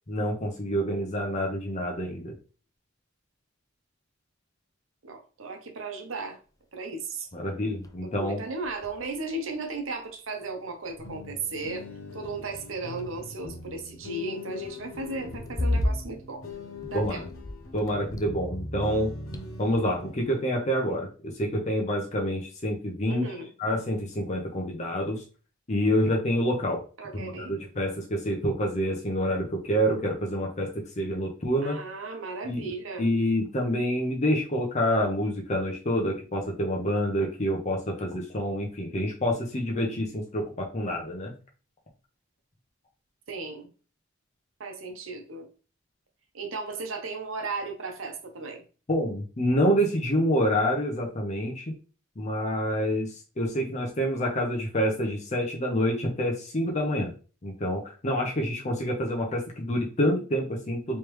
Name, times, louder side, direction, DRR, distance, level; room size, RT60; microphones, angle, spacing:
voice 1, 0.1-2.3 7.3-8.4 16.9-17.3 17.7-19.1 19.6-23.3 23.6-25.2 25.7-26.8 27.1-30.7 31.0-31.8 32.4-32.7 33.0-41.3 48.9-51.7 52.2-57.1 57.4-61.0, equal, 35° left, 0.7 m, -27 dB
voice 2, 5.0-6.4 6.7-7.3 8.0-11.9 12.1-16.4 16.9-17.2 23.1-23.5 27.0-27.5 31.6-33.1 43.3-43.7 44.6-45.5 46.3-48.6, right 3 dB, 80° right, 0.8 m, -35 dB
sound 1, 7.3-7.4 7.8-8.1 8.4-10.1 10.9-11.3 11.6-11.8 12.6-13.6 15.0-18.6 18.9-19.9, left 1 dB, 15° left, 0.3 m, -34 dB
sound 2, 11.0-20.5, left 2 dB, 85° left, 0.9 m, -41 dB
3.3 x 3.2 x 3.1 m
head